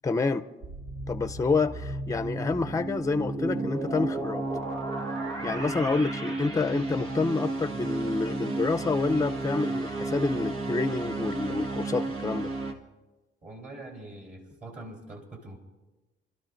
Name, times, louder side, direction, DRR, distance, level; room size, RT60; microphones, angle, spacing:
voice 1, 0.0-0.5 1.1-4.4 5.4-12.5, left 3 dB, 15° left, 10 dB, 0.6 m, -28 dB
sound 1, 0.6-12.7, right 2 dB, 80° right, 1.6 m, -32 dB
voice 2, 13.4-15.6, right 2 dB, 40° right, 0 dB, 3.3 m, -43 dB
28.0 x 12.5 x 2.6 m, 1.2 s
cardioid pair, 90°, 20 cm